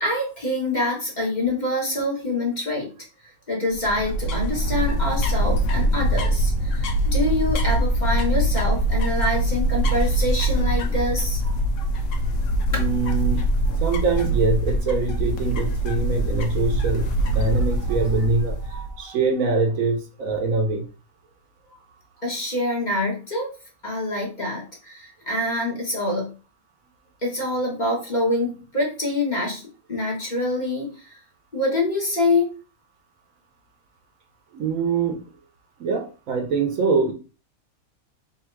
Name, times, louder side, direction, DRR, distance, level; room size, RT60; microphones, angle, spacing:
voice 1, 0.0-2.9 3.5-11.4 12.7-12.8 22.2-23.5 23.8-26.3 27.2-29.6 29.9-31.1 31.5-32.5, left 1 dB, 30° left, -2 dB, 1.4 m, -25 dB
sound 1, 3.7-19.0, right 1 dB, 65° left, 1.1 m, -23 dB
voice 2, 12.7-13.5 13.8-20.9 34.5-35.2 35.8-37.1, right 4 dB, 70° right, 3 dB, 1.2 m, -24 dB
3.6 x 2.7 x 4.5 m, 0.34 s
omnidirectional pair, 1.5 m